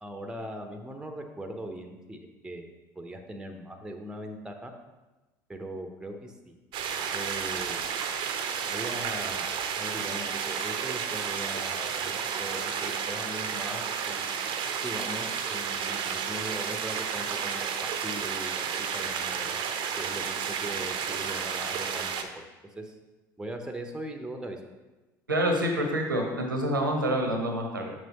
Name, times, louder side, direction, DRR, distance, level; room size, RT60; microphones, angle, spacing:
voice 1, 0.0-2.7 3.0-4.7 5.5-6.5 6.9-7.8 8.6-9.5 9.8-14.4 14.8-19.6 20.0-22.4 22.8-23.0 23.4-24.6, right 1 dB, 5° right, 5 dB, 0.8 m, -40 dB
sound 1, 6.7-22.2, right 7 dB, 50° right, 0.7 m, -32 dB
voice 2, 25.3-27.9, right 1 dB, 90° right, 2 dB, 0.9 m, -27 dB
6.4 x 6.1 x 3.0 m, 1.1 s
figure-of-eight pair, 65°, 11 cm